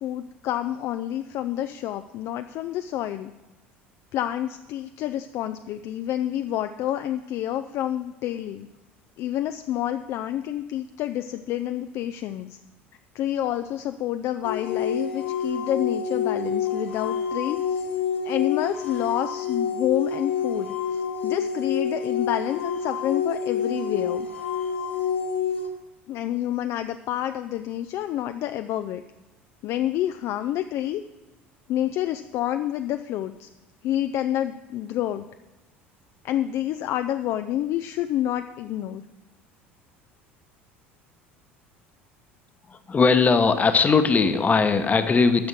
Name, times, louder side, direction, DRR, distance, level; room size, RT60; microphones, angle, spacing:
voice 1, 0.0-3.3 4.1-8.7 9.2-12.6 13.1-17.9 18.2-24.3 26.1-29.0 29.6-31.0 31.7-33.5 33.8-35.3 36.2-39.0, left 12 dB, 45° left, 9 dB, 0.3 m, -28 dB
sound 1, 14.4-25.7, left 7 dB, 80° left, 0.9 m, -28 dB
voice 2, 42.7-45.5, left 4 dB, 25° left, 9 dB, 0.9 m, -19 dB
10.5 x 6.3 x 6.0 m, 1.1 s
figure-of-eight pair, 65°, 7 cm